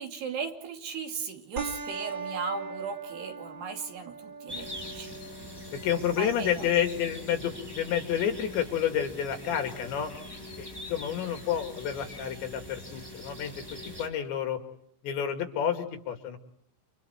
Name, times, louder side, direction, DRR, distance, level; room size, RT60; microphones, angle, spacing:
voice 1, 0.0-5.2 6.2-6.7, right 5 dB, 60° right, 4 dB, 4.6 m, -37 dB
sound 1, 1.6-10.5, right 4 dB, 25° right, 2.5 m, -43 dB
sound 2, 4.5-14.1, left 1 dB, 5° right, 6.4 m, -43 dB
voice 2, 5.7-10.1 10.6-13.5 14.0-14.6 15.0-16.4, left 9 dB, 70° left, 5 dB, 4.6 m, -29 dB
30.0 x 27.0 x 4.5 m, 0.68 s
omnidirectional pair, 5.4 m